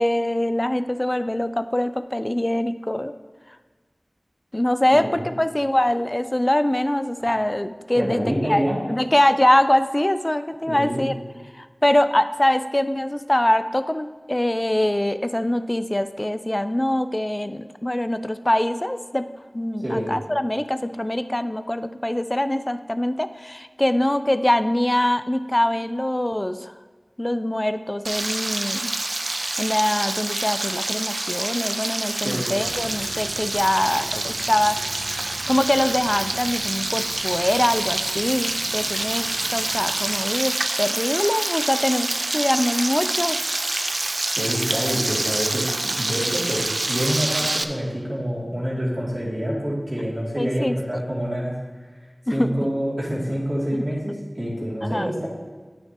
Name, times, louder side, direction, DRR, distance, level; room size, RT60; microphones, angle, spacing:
voice 1, 0.0-3.1 4.5-8.6 8.9-11.1 11.5-19.3 19.5-26.7 27.2-28.9 29.6-34.8 35.5-43.4 50.4-50.8 52.3-52.5 53.7-53.9 54.8-55.1, left 1 dB, 25° left, 11 dB, 0.4 m, -23 dB
voice 2, 4.9-5.3 7.9-8.8 10.7-11.0 19.8-20.1 32.2-32.5 44.3-51.5 52.3-55.3, equal, 35° right, -7 dB, 2.5 m, -27 dB
Frying (food), 28.0-47.6, right 2 dB, 65° right, 0.4 m, -26 dB
sound 1, 32.5-40.1, equal, 10° right, 2.8 m, -42 dB
9.1 x 8.9 x 2.9 m, 1.4 s
wide cardioid pair, 50°, 0 cm